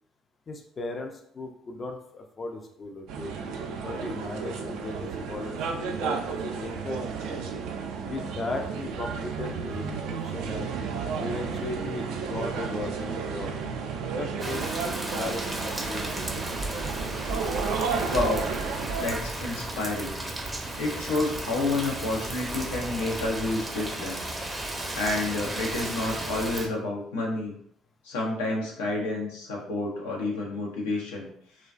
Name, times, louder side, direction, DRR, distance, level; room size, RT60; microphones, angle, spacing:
voice 1, 0.5-3.3 3.8-7.4 8.0-10.7 11.2-13.5 14.1-16.3, left 2 dB, 40° left, 3 dB, 0.4 m, -37 dB
sound 1, 3.1-19.2, right 5 dB, 75° right, 0.3 m, -33 dB
sound 2, 6.6-9.3 10.4-13.4 13.8-16.8, right 3 dB, 55° left, 1.0 m, -47 dB
Rain, 14.4-26.7, right 1 dB, 15° right, 0.5 m, -34 dB
voice 2, 18.0-18.5 19.0-20.1 20.8-24.3 24.9-27.5 28.0-31.3, left 2 dB, 90° left, -1 dB, 0.5 m, -29 dB
2.3 x 2.2 x 2.4 m, 0.66 s
hypercardioid pair, 65°, 0 cm